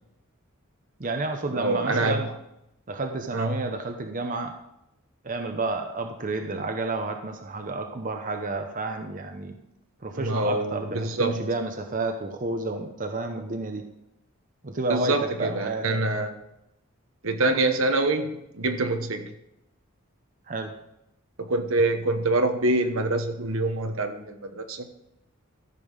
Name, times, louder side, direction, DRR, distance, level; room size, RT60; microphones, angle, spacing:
voice 1, 1.0-2.3 2.9-4.6 5.2-9.6 10.0-13.8 14.6-15.9 20.5-20.7, right 3 dB, 40° right, 5 dB, 0.8 m, -30 dB
voice 2, 1.5-2.3 3.3-3.6 10.2-11.4 14.9-16.3 17.2-19.3 21.4-24.9, right 2 dB, 70° right, 7 dB, 1.2 m, -25 dB
14.0 x 6.9 x 5.4 m, 0.84 s
head